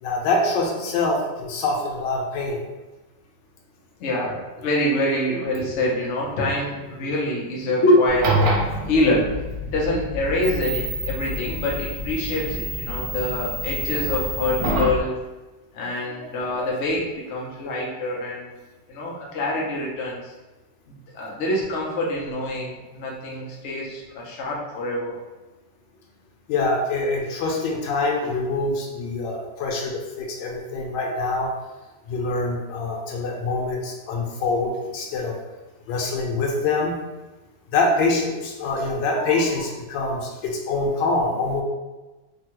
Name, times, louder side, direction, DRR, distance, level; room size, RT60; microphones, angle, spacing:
voice 1, 0.0-2.6 16.1-16.2 16.6-16.7 26.5-31.5 32.1-35.3 35.9-37.0 37.7-41.6, left 3 dB, 90° left, 0 dB, 1.3 m, -25 dB
voice 2, 4.0-8.3 8.9-9.3 9.6-15.2 15.7-18.6 18.9-20.3 20.9-25.1, left 1 dB, 55° left, -3 dB, 0.8 m, -25 dB
sound 1, 8.1-15.0, right 1 dB, 65° right, 1.0 m, -27 dB
3.5 x 2.2 x 2.9 m, 1.1 s
omnidirectional pair, 1.9 m